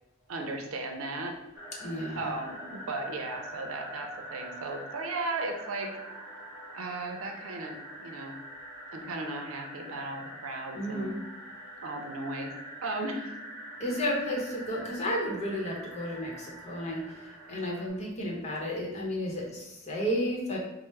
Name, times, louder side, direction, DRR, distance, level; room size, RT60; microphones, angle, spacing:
voice 1, 0.3-1.3 2.1-5.9 6.7-8.4 8.9-11.1 11.8-12.5 12.8-13.3, right 2 dB, 85° right, 3 dB, 0.5 m, -36 dB
sound 1, 1.5-17.9, equal, 10° right, 1.1 m, -44 dB
voice 2, 1.8-2.2 10.7-11.2 13.8-20.6, equal, 35° left, -3 dB, 0.8 m, -32 dB
4.4 x 2.0 x 3.1 m, 0.93 s
head